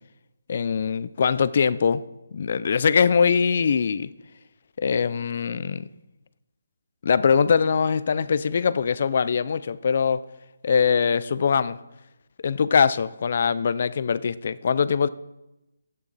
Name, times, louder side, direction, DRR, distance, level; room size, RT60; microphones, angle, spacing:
voice 1, 0.5-2.0 2.3-4.1 4.8-5.9 7.0-10.2 10.6-11.8 12.4-15.1, left 6 dB, 45° left, 0.4 m, -22 dB
12.5 x 9.1 x 4.1 m
hypercardioid pair, 170°, 0 cm